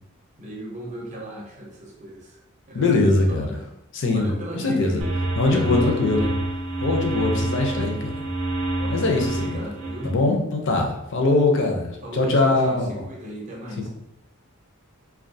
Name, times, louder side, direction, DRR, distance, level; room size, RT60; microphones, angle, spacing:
voice 1, 0.4-2.4 2.7-3.7 4.1-5.1 5.4-6.3 8.8-10.2 11.6-13.9, right 1 dB, 35° right, -3 dB, 0.6 m, -36 dB
voice 2, 2.7-3.5 3.9-5.0 5.4-6.3 6.8-8.2 8.9-9.6 10.0-13.0, left 2 dB, 60° left, 2 dB, 0.5 m, -22 dB
sound 1, 5.0-10.1, right 2 dB, 75° right, 0.5 m, -27 dB
2.3 x 2.3 x 2.5 m, 0.86 s
head